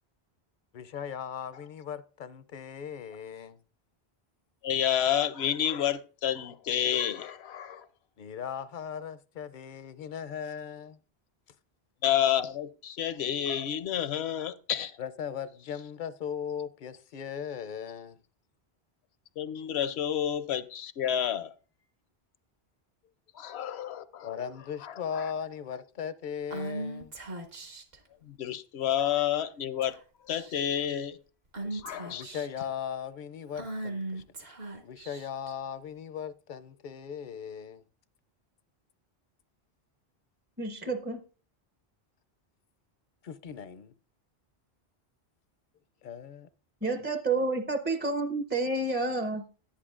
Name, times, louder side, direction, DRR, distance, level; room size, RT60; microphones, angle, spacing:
voice 1, 0.7-3.6 8.2-11.0 15.0-18.2 24.2-27.2 32.1-34.5 34.8-37.8 43.4-43.9 46.0-46.5, left 8 dB, 60° left, 0.6 m, -38 dB
voice 2, 4.6-7.9 12.0-15.0 19.4-21.5 23.3-24.3 24.8-25.3 28.2-30.0 30.2-31.2 31.6-32.2, left 10 dB, 80° left, 0.9 m, -30 dB
Female speech woman speaking / Whispering, 26.5-28.0 29.0-29.4 29.8-30.0 30.3-30.8 31.5-32.6 33.5-35.5, right 2 dB, 65° right, 1.6 m, -39 dB
voice 3, 40.6-41.2 46.8-49.5, right 3 dB, 15° right, 0.5 m, -29 dB
10.5 x 10.0 x 2.4 m
omnidirectional pair, 1.1 m